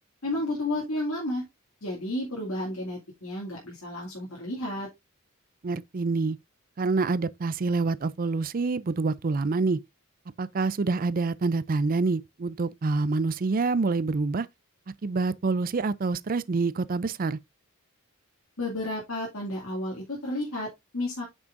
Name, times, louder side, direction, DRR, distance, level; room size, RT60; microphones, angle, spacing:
voice 1, 0.2-1.4 1.8-4.9 18.6-21.2, left 1 dB, 70° left, 2.4 m, -32 dB
voice 2, 5.6-6.4 6.8-9.8 10.4-14.5 15.0-17.4, right 3 dB, 40° right, 0.4 m, -26 dB
8.9 x 6.1 x 2.5 m
head